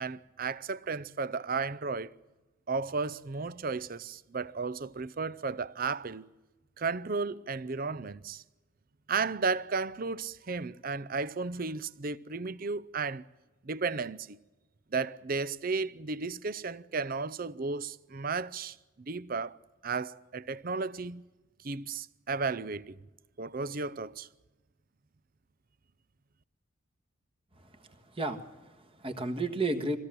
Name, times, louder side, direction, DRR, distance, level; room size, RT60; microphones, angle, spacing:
voice 1, 0.0-2.1 2.7-6.3 6.8-8.4 9.1-13.2 13.6-14.4 14.9-19.6 19.8-21.2 21.6-23.0 23.4-24.3, right 4 dB, 45° right, 0.6 m, -34 dB
voice 2, 27.5-30.0, right 2 dB, 25° right, 1.5 m, -34 dB
22.5 x 16.5 x 7.6 m
head